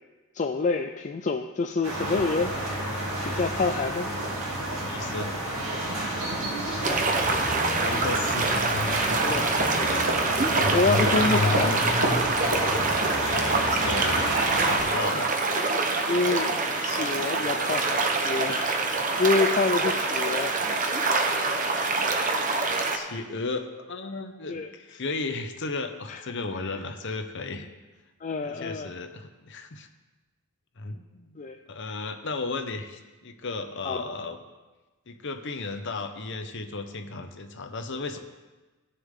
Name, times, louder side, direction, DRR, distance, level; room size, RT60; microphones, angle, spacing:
voice 1, 0.3-2.5 3.3-4.1 6.8-7.1 9.2-10.1 10.4-12.0 16.1-16.5 16.8-18.7 19.2-21.0 24.5-24.7 26.1-26.2 28.2-28.9 31.4-31.6 33.8-34.1, left 3 dB, 35° left, 5 dB, 0.4 m, -27 dB
sound 1, 1.8-14.8, right 1 dB, 65° right, 2.9 m, -28 dB
voice 2, 4.8-5.5 7.4-8.7 9.8-10.0 13.2-15.3 22.0-22.1 22.4-22.6 22.9-27.7 28.4-29.9 30.8-31.4 31.7-34.4 35.1-38.2, left 3 dB, 55° left, 7 dB, 0.9 m, -35 dB
sound 2, 6.8-23.0, right 3 dB, 35° right, 0.9 m, -26 dB
17.0 x 6.7 x 3.8 m, 1.2 s
head